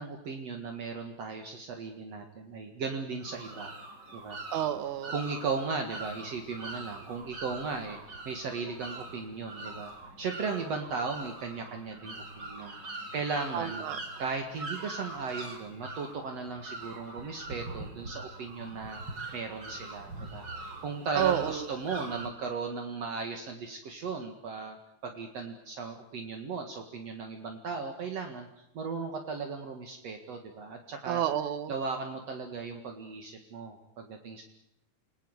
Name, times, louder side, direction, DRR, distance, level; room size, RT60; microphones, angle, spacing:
voice 1, 0.0-3.7 4.1-4.4 5.1-8.0 8.2-9.9 10.2-13.8 14.2-24.8 25.0-31.2 31.7-34.4, right 4 dB, 60° right, 3 dB, 3.0 m, -36 dB
sound 1, 3.2-22.3, right 2 dB, 40° right, 4.3 m, -43 dB
voice 2, 4.5-5.1 13.5-14.0 21.2-21.6 31.1-31.7, right 11 dB, 90° right, 11 dB, 2.7 m, -30 dB
28.5 x 20.5 x 8.2 m, 0.78 s
omnidirectional pair, 3.3 m